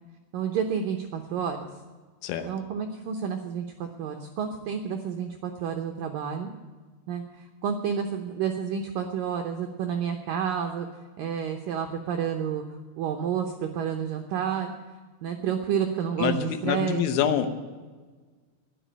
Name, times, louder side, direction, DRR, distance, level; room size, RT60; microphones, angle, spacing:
voice 1, 0.3-1.7 2.4-6.5 7.1-10.9 11.2-12.6 13.0-14.7 15.2-17.1, right 7 dB, 80° right, 4 dB, 2.0 m, -30 dB
voice 2, 16.2-17.6, left 8 dB, 85° left, 9 dB, 3.4 m, -26 dB
12.0 x 10.5 x 9.0 m, 1.4 s
omnidirectional pair, 5.2 m